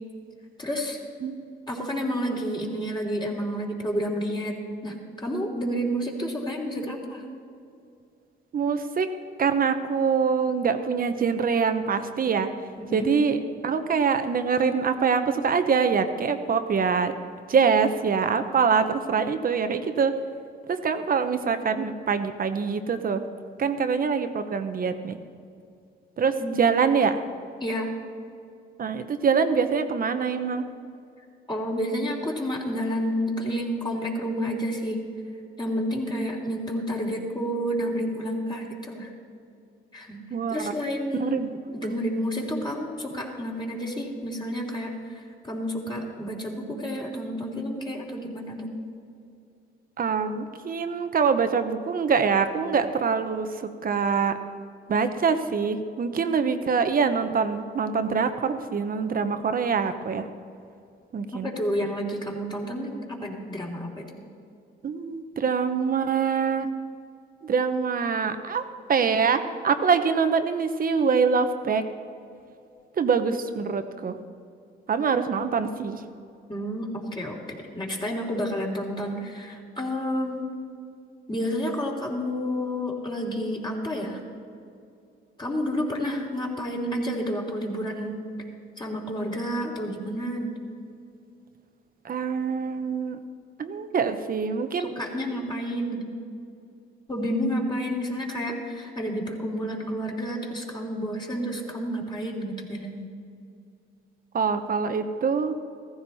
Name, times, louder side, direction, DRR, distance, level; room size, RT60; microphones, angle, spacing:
voice 1, 0.6-1.0 1.7-4.6 4.8-7.2 12.8-13.1 26.4-26.6 27.6-27.9 31.5-35.0 35.6-39.1 39.9-40.2 40.5-41.4 41.7-48.7 61.3-64.2 76.5-77.4 77.7-80.5 81.3-84.2 85.4-88.2 88.8-90.5 94.8-96.0 97.1-103.1, equal, 20° left, -1 dB, 3.2 m, -30 dB
voice 2, 8.5-9.1 9.4-12.5 12.9-17.1 17.5-20.1 20.7-23.2 23.6-25.2 26.2-27.2 28.8-30.6 40.3-40.7 41.2-41.5 50.0-54.4 54.9-60.3 61.1-61.5 64.8-66.7 67.4-68.6 68.9-71.8 73.0-74.2 74.9-76.0 92.0-93.2 93.6-94.9 104.3-105.6, right 5 dB, 45° right, 9 dB, 1.1 m, -24 dB
15.5 x 14.5 x 4.3 m, 2.4 s
cardioid pair, 90°, 20 cm